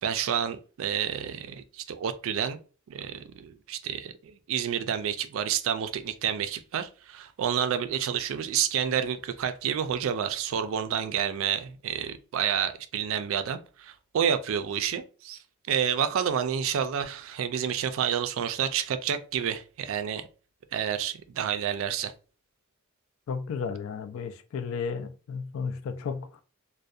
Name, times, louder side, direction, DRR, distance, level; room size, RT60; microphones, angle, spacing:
voice 1, 0.0-2.6 2.9-15.4 15.7-20.3 20.7-22.1, right 8 dB, 65° right, 0.3 m, -29 dB
voice 2, 23.3-26.3, left 5 dB, 70° left, 0.3 m, -33 dB
2.6 x 2.1 x 2.3 m
head